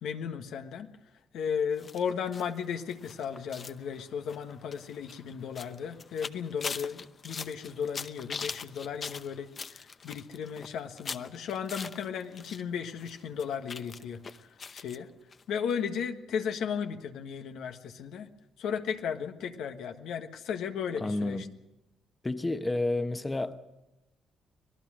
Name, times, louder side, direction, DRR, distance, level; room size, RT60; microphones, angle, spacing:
voice 1, 0.0-0.9 1.3-14.2 14.7-15.1 15.5-18.3 18.6-21.4, left 7 dB, 80° left, 1.4 m, -35 dB
sound 1, 1.8-12.6 12.9-15.0 15.3-15.4 15.7-15.8, left 5 dB, 40° left, 0.8 m, -42 dB
voice 2, 20.9-21.5 22.2-23.6, left 2 dB, 20° left, 1.1 m, -30 dB
25.5 x 18.0 x 6.3 m
cardioid pair, 90°, 0 cm